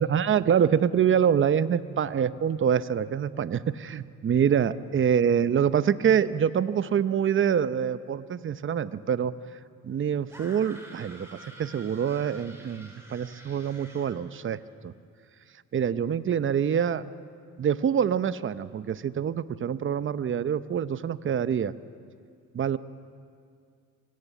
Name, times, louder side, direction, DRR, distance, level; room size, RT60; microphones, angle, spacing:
voice 1, 0.0-9.3 9.8-14.9 15.7-17.0 17.6-21.7 22.5-22.8, right 8 dB, 40° right, 14 dB, 0.8 m, -25 dB
sound 1, 10.3-14.2, right 1 dB, 10° right, 5.7 m, -48 dB
26.0 x 17.0 x 8.3 m, 2.2 s
cardioid pair, 90°, 30 cm